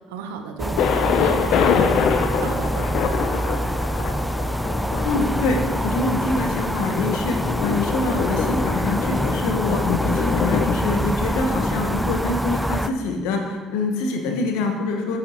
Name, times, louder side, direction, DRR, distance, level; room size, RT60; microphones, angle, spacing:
voice 1, 0.1-1.7 2.4-2.9, right 6 dB, 90° right, 5 dB, 0.8 m, -33 dB
sound 1, 0.6-12.9, equal, ahead, 0.3 m, -25 dB
Thunder, 0.8-12.6, left 6 dB, 65° left, 0.6 m, -25 dB
voice 2, 5.0-15.2, left 3 dB, 80° left, 3 dB, 1.1 m, -25 dB
8.7 x 6.7 x 3.0 m, 1.4 s
supercardioid pair, 70°, 0 cm